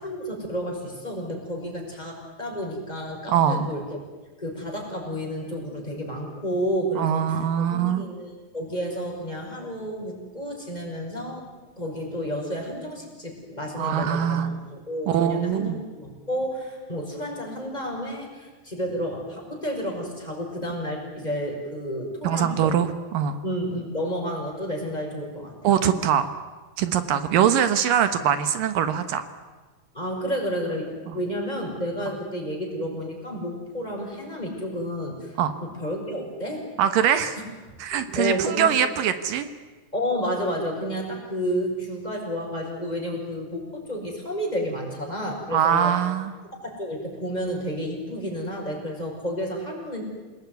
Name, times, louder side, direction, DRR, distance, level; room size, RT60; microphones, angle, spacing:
voice 1, 0.0-4.0 4.4-11.5 11.8-22.7 23.4-25.5 29.9-35.3 35.6-36.7 37.4-37.5 37.9-38.7 39.9-45.9 46.6-50.0, equal, 10° left, 0 dB, 6.2 m, -31 dB
voice 2, 3.3-3.7 7.0-8.0 13.8-14.6 15.1-15.8 22.2-23.4 25.6-26.3 26.8-29.3 31.1-31.2 35.4-35.5 36.8-37.4 37.8-39.5 45.5-46.3, right 9 dB, 75° right, 10 dB, 2.8 m, -22 dB
28.5 x 20.0 x 9.5 m, 1.3 s
omnidirectional pair, 4.0 m